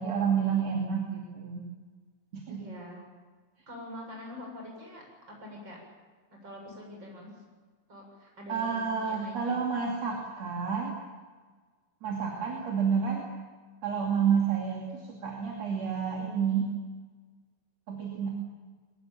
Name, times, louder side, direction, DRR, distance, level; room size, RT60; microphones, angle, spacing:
voice 1, 0.0-1.6 2.3-2.6 8.5-10.9 12.0-13.2 13.8-16.7 17.9-18.3, right 6 dB, 40° right, -1 dB, 3.3 m, -29 dB
voice 2, 2.5-3.0 3.7-5.8 6.3-7.4 7.9-9.6, left 1 dB, 25° right, 0 dB, 7.6 m, -45 dB
22.5 x 21.0 x 7.3 m, 1.5 s
omnidirectional pair, 5.2 m